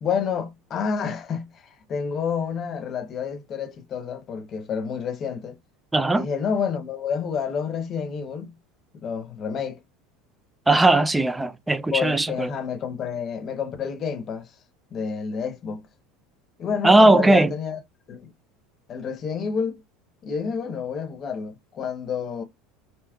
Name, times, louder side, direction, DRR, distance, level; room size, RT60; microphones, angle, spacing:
voice 1, 0.0-5.6 6.1-8.6 9.0-9.8 11.9-14.5 14.9-15.9 16.6-17.8 18.1-18.3 18.9-19.8 20.2-22.4, left 6 dB, 40° left, 0.8 m, -29 dB
voice 2, 5.9-6.3 10.7-12.5 16.8-17.5, right 2 dB, 10° right, 0.3 m, -18 dB
3.5 x 2.7 x 2.2 m
supercardioid pair, 115°, 0 cm